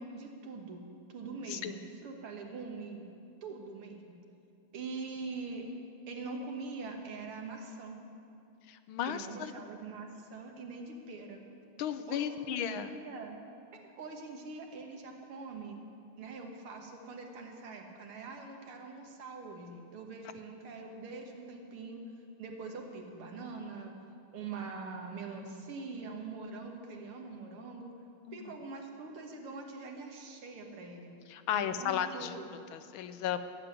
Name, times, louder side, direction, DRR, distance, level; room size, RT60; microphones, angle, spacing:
voice 1, 0.0-3.1 3.4-4.2 4.7-5.7 6.1-7.9 9.0-11.4 12.1-13.4 13.7-15.8 16.2-22.0 22.4-23.9 24.3-27.9 28.3-31.1 31.5-32.5, right 4 dB, 85° right, 2 dB, 2.4 m, -43 dB
voice 2, 8.7-9.5 11.8-12.9 28.3-28.5 31.3-32.3 32.7-33.4, left 9 dB, 80° left, 11 dB, 1.4 m, -34 dB
14.0 x 7.5 x 9.1 m, 2.6 s
omnidirectional pair, 2.4 m